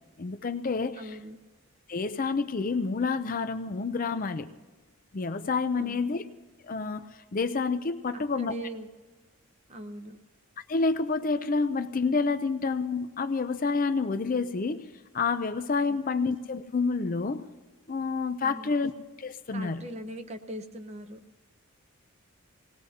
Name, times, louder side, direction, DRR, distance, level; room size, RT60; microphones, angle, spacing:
voice 1, 0.2-1.1 1.9-4.5 5.1-6.2 6.6-8.5 10.6-17.5 17.9-18.9 19.2-19.8, left 4 dB, 40° left, 10 dB, 0.5 m, -29 dB
voice 2, 0.9-1.4 5.7-6.2 8.1-8.9 9.7-10.2 15.9-16.0 18.4-18.7 19.5-21.3, right 1 dB, 30° right, 8 dB, 0.8 m, -41 dB
26.5 x 19.0 x 2.8 m, 1.3 s
head